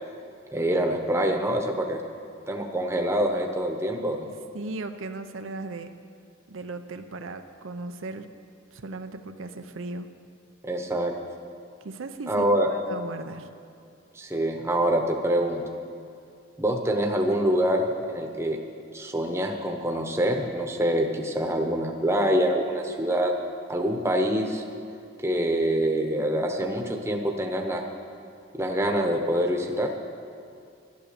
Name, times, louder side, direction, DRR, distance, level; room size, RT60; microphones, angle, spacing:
voice 1, 0.5-2.0 2.5-4.3 10.6-11.1 12.3-12.7 14.1-15.6 16.6-18.6 18.9-23.3 23.7-24.6 25.2-27.8 28.5-29.9, right 1 dB, 15° right, 3 dB, 1.0 m, -25 dB
voice 2, 4.3-5.9 6.5-8.3 8.7-10.1 11.8-13.5, right 3 dB, 80° right, 7 dB, 0.7 m, -37 dB
12.0 x 11.5 x 6.8 m, 2.4 s
head